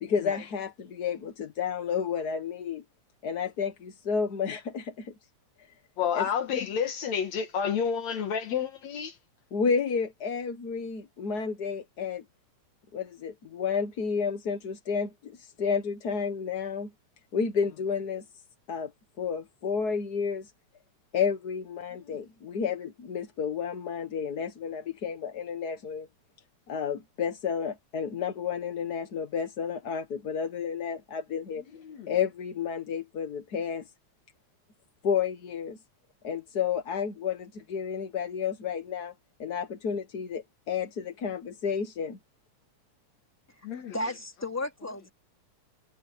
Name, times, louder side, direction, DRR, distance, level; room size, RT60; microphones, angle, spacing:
voice 1, 0.0-2.8 3.2-5.1 6.1-6.3 9.5-12.2 12.9-16.9 17.3-18.2 18.7-18.9 19.2-20.5 21.1-26.1 26.7-31.6 32.1-33.8 35.0-35.8 36.2-39.1 39.4-42.2, left 6 dB, 45° left, 1.3 m, -31 dB
voice 2, 6.0-9.2 17.6-17.7 22.0-22.2 31.7-32.2 43.6-44.2, left 7 dB, 65° left, 2.6 m, -31 dB
voice 3, 43.9-45.1, left 2 dB, 5° left, 3.5 m, -34 dB
omnidirectional pair, 3.5 m